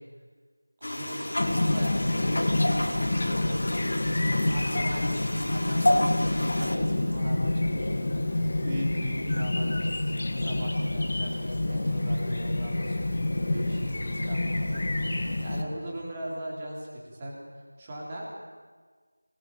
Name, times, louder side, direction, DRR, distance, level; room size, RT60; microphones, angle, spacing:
sound 1, 0.8-6.8, left 1 dB, 50° left, 3.6 m, -30 dB
voice 1, 0.8-2.9 3.2-3.8 4.4-18.3, right 1 dB, 15° right, -4 dB, 3.9 m, -39 dB
Chirp tweet, 1.4-15.6, left 2 dB, 35° left, 2.3 m, -28 dB
25.0 x 20.5 x 8.9 m, 1.5 s
figure-of-eight pair, 175°, 0 cm